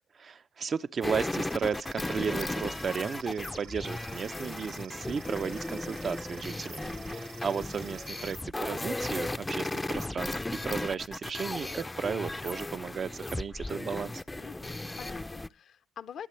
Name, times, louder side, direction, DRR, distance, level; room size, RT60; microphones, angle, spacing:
voice 1, 0.1-10.4 10.6-14.2, right 6 dB, 45° right, 0.6 m, -34 dB
sound 1, 1.0-15.5, left 2 dB, 15° left, 0.5 m, -36 dB
sound 2, 1.5-8.4, right 11 dB, 90° right, 0.7 m, -52 dB
voice 2, 6.8-7.2 14.4-16.3, left 8 dB, 65° left, 0.7 m, -46 dB
21.5 x 7.5 x 3.2 m
cardioid pair, 90°, 0 cm